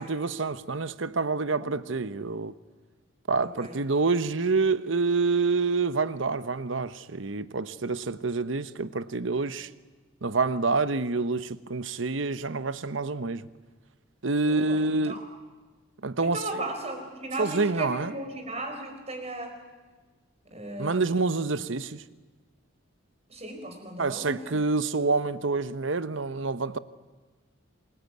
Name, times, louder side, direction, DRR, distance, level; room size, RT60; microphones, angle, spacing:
voice 1, 0.0-2.5 3.3-9.7 10.2-13.5 14.2-15.2 16.0-16.4 17.4-18.1 20.8-22.0 24.0-26.8, right 3 dB, 70° right, 1.0 m, -27 dB
voice 2, 3.4-3.7 14.5-15.2 16.2-19.6 20.4-21.1 23.3-24.7, right 1 dB, 30° right, 4.9 m, -36 dB
27.5 x 20.5 x 9.4 m
head